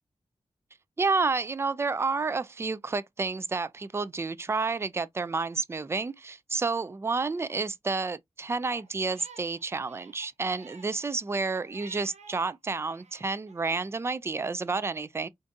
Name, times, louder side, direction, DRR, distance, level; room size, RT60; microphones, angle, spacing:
voice 1, 1.0-15.3, right 4 dB, 20° right, 0.3 m, -30 dB
Crying sobbing, 8.6-12.5 12.9-13.9, right 4 dB, 70° right, 0.7 m, -53 dB
3.4 x 2.6 x 2.5 m
cardioid pair, 65°, 12 cm